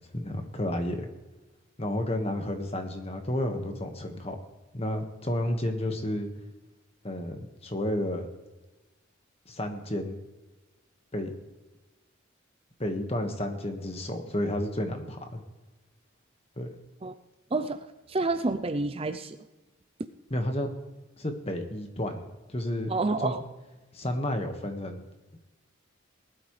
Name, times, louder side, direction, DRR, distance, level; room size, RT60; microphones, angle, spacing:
voice 1, 0.1-1.1 1.8-4.4 4.7-6.3 7.0-8.3 9.4-10.2 11.1-11.3 12.8-15.4 16.6-16.7 20.3-20.7 21.2-22.9 23.2-23.3 23.9-25.0, left 1 dB, 30° left, 5 dB, 1.6 m, -31 dB
voice 2, 17.5-19.4 22.9-23.4, right 3 dB, 30° right, 10 dB, 0.5 m, -29 dB
19.5 x 12.5 x 3.3 m, 1.1 s
head